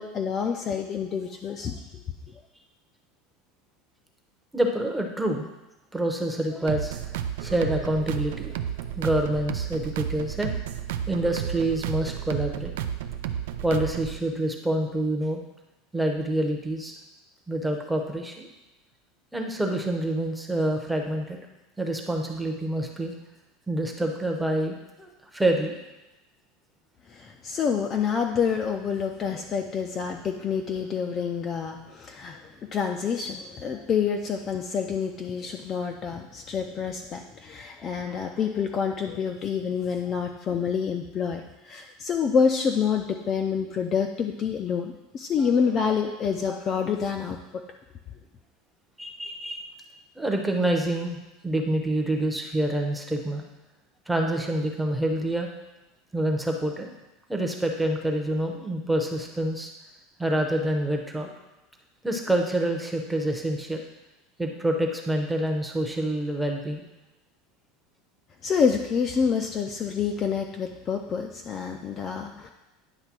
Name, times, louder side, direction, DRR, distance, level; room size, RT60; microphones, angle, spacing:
voice 1, 0.0-2.0 27.1-47.6 68.4-72.5, left 6 dB, 25° left, 3 dB, 0.4 m, -27 dB
voice 2, 4.5-5.5 5.9-7.0 7.4-8.5 9.0-10.5 11.1-12.7 13.6-15.4 15.9-16.9 17.5-18.5 19.3-21.4 21.8-23.1 23.7-25.8 49.0-49.7 50.2-51.2 51.4-53.4 54.1-55.5 56.1-56.9 57.3-59.7 60.2-61.3 62.0-63.8 64.4-66.9, right 1 dB, 5° right, 2 dB, 0.7 m, -27 dB
sound 1, 6.7-14.2, right 9 dB, 90° right, 0.5 m, -32 dB
9.6 x 3.3 x 6.0 m, 1.0 s
supercardioid pair, 170°, 0 cm